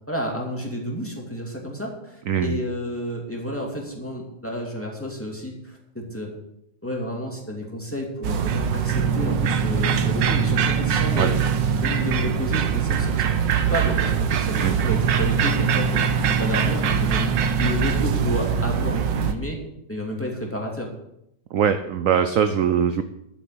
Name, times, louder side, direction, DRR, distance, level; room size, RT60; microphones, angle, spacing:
voice 1, 0.1-6.3 6.8-11.4 11.8-13.3 13.6-19.6 19.9-20.9, equal, 5° left, 0 dB, 2.5 m, -31 dB
sound 1, 8.2-19.3, right 7 dB, 90° right, 1.6 m, -22 dB
voice 2, 21.5-23.0, right 8 dB, 60° right, 10 dB, 0.9 m, -21 dB
12.0 x 7.2 x 7.9 m, 0.80 s
omnidirectional pair, 1.9 m